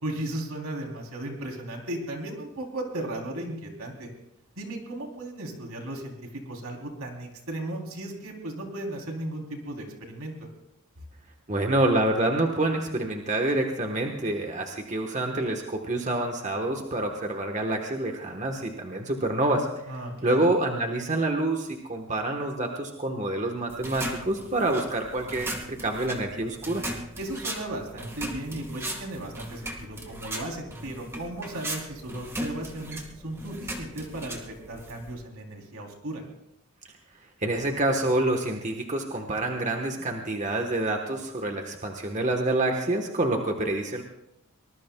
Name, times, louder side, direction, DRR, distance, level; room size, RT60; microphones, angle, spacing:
voice 1, 0.0-4.1 4.6-6.1 6.4-10.5 19.9-20.5 27.2-36.2, right 1 dB, 75° right, 1 dB, 3.4 m, -36 dB
voice 2, 11.5-19.7 20.2-26.9 37.4-44.0, right 2 dB, 35° right, 3 dB, 1.2 m, -27 dB
sound 1, 23.7-35.2, right 1 dB, 10° right, 1.6 m, -38 dB
24.0 x 20.0 x 2.3 m, 0.84 s
head